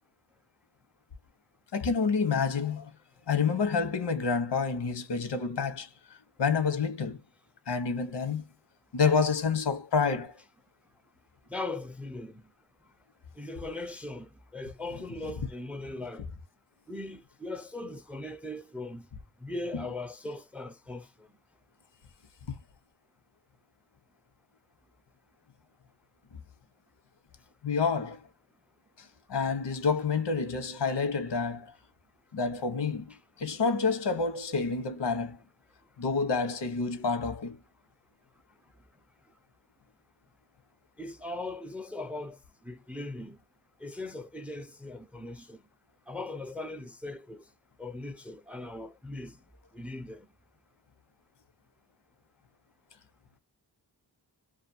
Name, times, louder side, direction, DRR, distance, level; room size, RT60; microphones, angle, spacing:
voice 1, 1.7-2.9 3.3-5.9 6.4-7.2 7.7-8.4 8.9-10.4 19.7-19.8 22.5-22.6 27.6-28.3 29.0-31.7 32.3-35.4 36.0-37.6, left 5 dB, 90° left, 0.9 m, -28 dB
voice 2, 11.5-12.4 13.4-16.3 16.9-19.1 19.4-21.1 41.0-42.4 42.6-43.4 43.8-45.6 46.1-47.4 47.8-49.4 49.7-50.3, left 2 dB, 5° right, 0.4 m, -39 dB
2.5 x 2.4 x 2.6 m
wide cardioid pair, 95°, 41 cm